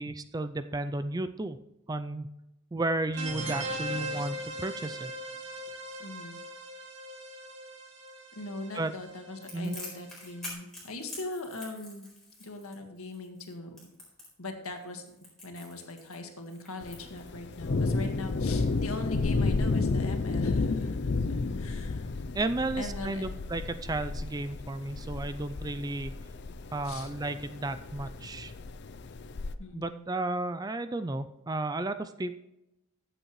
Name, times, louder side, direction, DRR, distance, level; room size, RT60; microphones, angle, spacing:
voice 1, 0.0-1.6 1.9-2.3 2.7-5.1 8.7-8.9 9.5-9.8 22.3-26.1 26.7-28.5 29.7-32.3, right 2 dB, 15° right, 11 dB, 0.3 m, -33 dB
sound 1, 3.1-10.5, right 1 dB, 55° right, 2.3 m, -40 dB
voice 2, 6.0-6.4 8.3-12.1 12.4-13.8 14.4-15.0 15.4-22.1 22.8-23.3 26.8-27.1 29.6-30.0, left 2 dB, 75° left, 4 dB, 1.8 m, -40 dB
Crackle, 9.4-17.7, left 2 dB, ahead, 4.2 m, -46 dB
Thunder, 16.8-29.5, left 3 dB, 50° left, 0.5 m, -32 dB
14.5 x 8.0 x 3.1 m, 0.90 s
head